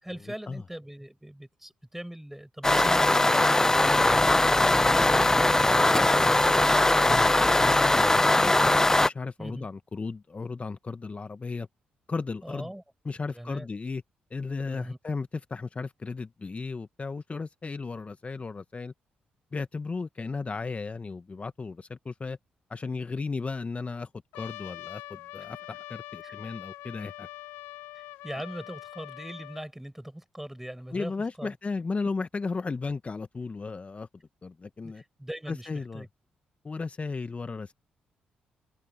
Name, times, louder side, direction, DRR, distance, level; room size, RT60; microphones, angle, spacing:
voice 1, 0.0-6.6 9.4-9.7 12.4-12.8 13.3-13.7 14.7-15.0 26.2-26.4 27.9-31.5 34.8-36.1, right 1 dB, 5° right, 7.4 m, -41 dB
sound 1, 2.6-9.1, left 2 dB, 15° left, 0.4 m, -21 dB
voice 2, 7.1-8.5 9.0-11.7 12.1-12.7 13.0-14.0 14.3-18.9 19.5-22.4 22.7-27.3 30.9-34.1 34.4-35.0 35.5-36.0 36.6-37.7, left 4 dB, 35° left, 1.0 m, -35 dB
Trumpet, 24.3-29.7, left 16 dB, 85° left, 0.7 m, -43 dB
hypercardioid pair, 50°, 4 cm